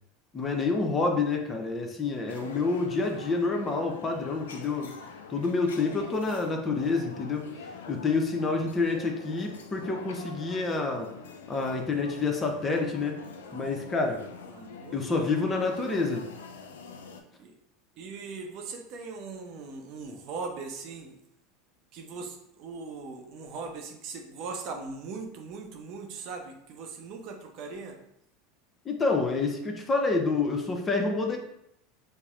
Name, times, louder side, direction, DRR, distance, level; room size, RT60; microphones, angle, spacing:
voice 1, 0.3-4.9 5.3-7.5 7.9-11.1 11.5-13.2 13.5-14.2 14.9-16.3 28.8-31.4, left 3 dB, 25° left, 3 dB, 0.6 m, -28 dB
sound 1, 2.3-17.2, left 5 dB, 80° left, 0.3 m, -45 dB
voice 2, 8.4-8.7 14.4-15.3 17.4-17.5 18.0-21.2 21.9-28.0, right 4 dB, 55° right, 2 dB, 0.6 m, -40 dB
5.4 x 2.0 x 2.4 m, 0.78 s
hypercardioid pair, 85°, 0 cm